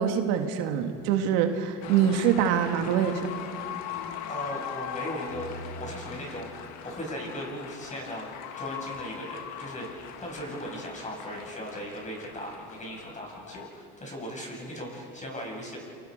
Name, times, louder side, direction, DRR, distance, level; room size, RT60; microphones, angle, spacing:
voice 1, 0.0-3.3, right 8 dB, 85° right, 5 dB, 1.9 m, -25 dB
sound 1, 1.8-13.7, left 8 dB, 65° left, 1.7 m, -40 dB
voice 2, 4.3-8.3 8.5-15.8, equal, 25° left, -1 dB, 7.2 m, -38 dB
28.0 x 25.0 x 5.2 m, 2.5 s
supercardioid pair, 100°, 30 cm